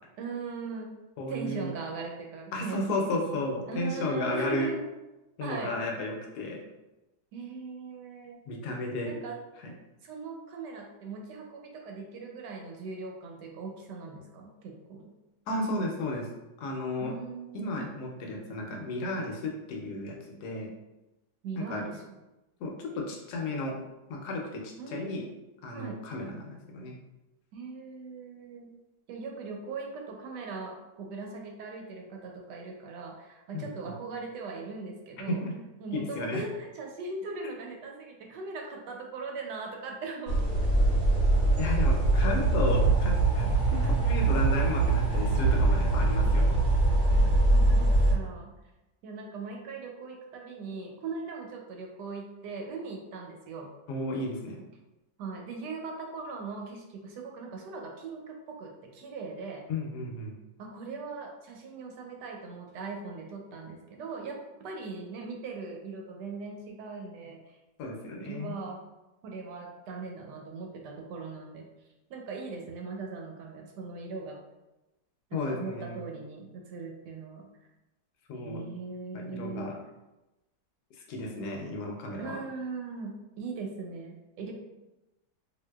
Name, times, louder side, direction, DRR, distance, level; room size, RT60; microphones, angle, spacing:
voice 1, 0.2-0.9 1.3-2.8 3.1-3.4 3.7-4.9 5.4-5.8 7.3-8.4 9.0-9.4 10.0-15.1 17.0-17.8 21.4-22.0 24.8-25.3 25.7-26.0 27.5-28.7 29.1-35.4 35.8-41.0 43.7-44.0 47.1-48.5 49.0-53.7 55.2-59.6 60.6-67.4 68.2-68.8 69.2-71.7 72.1-74.4 75.3-77.5 78.3-79.8 82.2-84.5, right 4 dB, 85° right, 1 dB, 1.2 m, -40 dB
voice 2, 1.2-1.7 2.5-4.7 5.4-6.7 8.5-9.1 9.6-9.7 15.5-16.3 16.6-17.1 17.5-20.2 20.4-20.7 21.5-21.9 22.6-23.8 24.1-25.3 25.6-26.9 33.5-33.9 35.3-35.5 35.9-36.4 41.6-46.5 53.9-54.6 59.7-60.4 67.8-68.6 75.3-76.1 78.3-78.7 79.1-79.8 81.1-82.4, left 2 dB, 75° left, 0 dB, 1.1 m, -33 dB
sound 1, 40.3-48.1, right 2 dB, 55° right, 0.7 m, -23 dB
3.7 x 2.6 x 2.3 m, 0.99 s
omnidirectional pair, 1.8 m